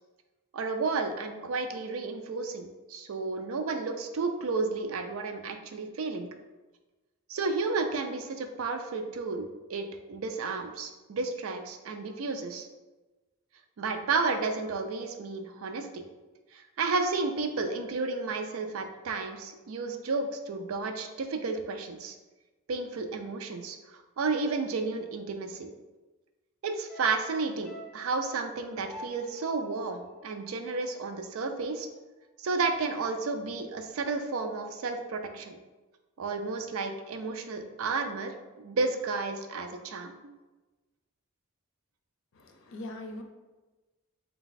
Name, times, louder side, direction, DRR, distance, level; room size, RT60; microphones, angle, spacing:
voice 1, 0.5-6.3 7.3-12.7 13.8-16.0 16.5-22.1 22.7-25.7 26.6-31.9 32.4-35.6 36.2-40.3, right 4 dB, 75° right, 6 dB, 0.4 m, -32 dB
sound 1, 26.9-31.3 31.6-31.7, equal, ahead, 0.5 m, -49 dB
voice 2, 42.3-43.2, left 1 dB, 65° left, 5 dB, 0.5 m, -41 dB
4.0 x 2.3 x 4.0 m, 1.2 s
head